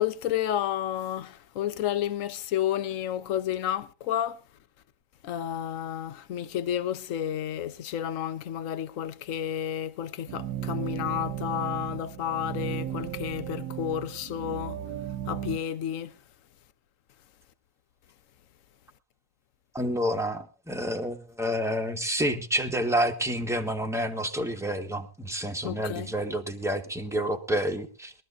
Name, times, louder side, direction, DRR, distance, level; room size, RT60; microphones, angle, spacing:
voice 1, 0.0-4.4 5.2-14.8 15.3-16.1 25.6-26.1, left 10 dB, 60° left, 1.1 m, -31 dB
sound 1, 10.3-15.6, right 10 dB, 70° right, 1.3 m, -35 dB
voice 2, 19.7-28.1, equal, ahead, 1.3 m, -29 dB
22.0 x 13.0 x 2.6 m
omnidirectional pair, 1.7 m